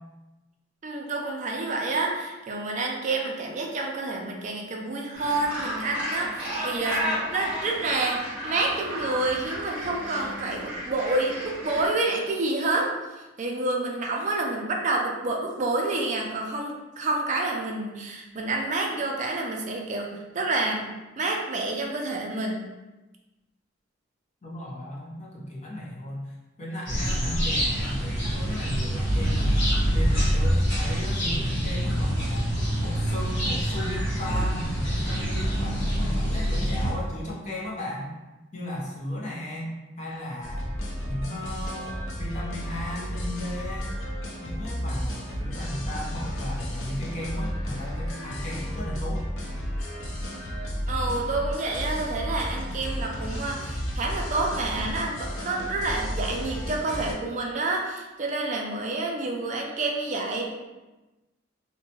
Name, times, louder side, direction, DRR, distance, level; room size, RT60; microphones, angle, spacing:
voice 1, 0.8-22.6 50.9-60.5, right 2 dB, 40° right, 0 dB, 0.4 m, -28 dB
Gull seagull, 5.1-11.9, equal, 5° right, 0.8 m, -33 dB
voice 2, 24.4-26.3 26.6-32.5 32.8-38.2 38.5-40.7 41.0-43.9 44.4-49.2, left 1 dB, 35° left, -4 dB, 0.6 m, -35 dB
sound 1, 26.9-36.9, equal, 65° left, 1.1 m, -25 dB
sound 2, 40.4-57.1, equal, 85° left, 0.5 m, -33 dB
2.7 x 2.1 x 2.8 m, 1.1 s
head